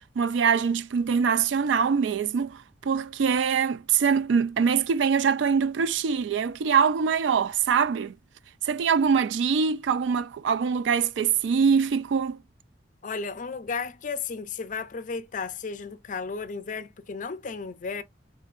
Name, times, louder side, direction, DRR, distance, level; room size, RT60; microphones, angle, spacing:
voice 1, 0.2-8.1 8.6-12.4, right 6 dB, 85° right, 0.3 m, -23 dB
voice 2, 13.0-18.0, left 5 dB, 45° left, 0.5 m, -34 dB
4.4 x 3.8 x 2.4 m
head